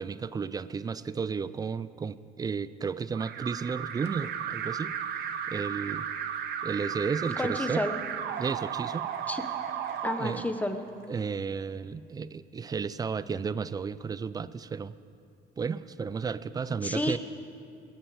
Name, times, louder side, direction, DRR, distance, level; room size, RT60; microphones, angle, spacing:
voice 1, 0.0-4.9 5.5-6.1 6.6-7.8 8.4-9.1 10.2-10.4 11.1-14.9 15.6-17.2, right 5 dB, 20° right, 16 dB, 0.4 m, -33 dB
Alarm, 3.1-11.0, right 8 dB, 75° right, 0.9 m, -35 dB
voice 2, 7.4-8.0 9.3-9.4 10.0-10.8 16.8-17.2, left 1 dB, 10° left, 7 dB, 1.0 m, -30 dB
21.0 x 9.1 x 4.9 m, 2.4 s
cardioid pair, 110°, 17 cm